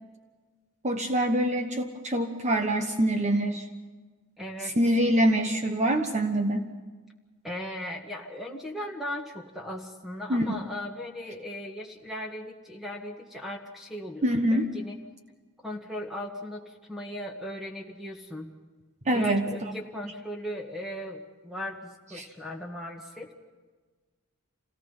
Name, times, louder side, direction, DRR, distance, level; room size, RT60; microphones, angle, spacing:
voice 1, 0.8-3.6 4.6-6.7 10.3-10.5 14.2-14.6 19.1-19.5 22.2-22.3, right 1 dB, 30° right, 5 dB, 1.2 m, -25 dB
voice 2, 4.4-4.8 7.4-14.2 14.5-15.0 15.6-18.5 19.1-23.3, left 1 dB, ahead, 1 dB, 1.7 m, -37 dB
27.5 x 18.0 x 5.6 m, 1.4 s
head